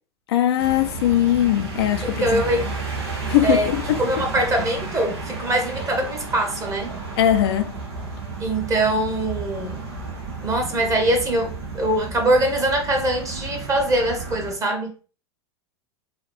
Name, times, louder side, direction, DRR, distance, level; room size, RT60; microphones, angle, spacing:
voice 1, 0.3-2.4 3.3-3.8 7.2-7.7, left 12 dB, 65° left, 0.5 m, -20 dB
sound 1, 0.6-14.5, right 3 dB, 75° right, 1.2 m, -32 dB
voice 2, 2.2-2.7 3.4-3.7 4.0-6.9 8.4-9.8 10.4-14.9, right 1 dB, 25° right, 1.2 m, -23 dB
3.8 x 2.4 x 3.3 m
hypercardioid pair, 90°, 14 cm